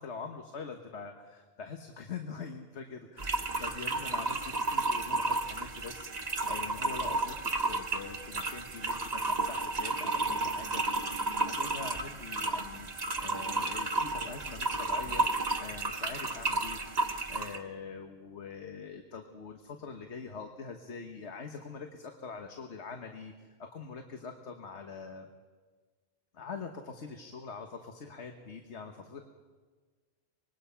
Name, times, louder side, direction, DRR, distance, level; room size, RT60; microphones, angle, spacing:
voice 1, 0.0-12.9 13.2-23.3 23.6-25.3 26.3-29.2, left 5 dB, 70° left, 5 dB, 1.5 m, -44 dB
sound 1, 3.2-17.6, right 2 dB, 35° right, 1.3 m, -32 dB
25.0 x 21.0 x 5.7 m, 1.5 s
omnidirectional pair, 1.2 m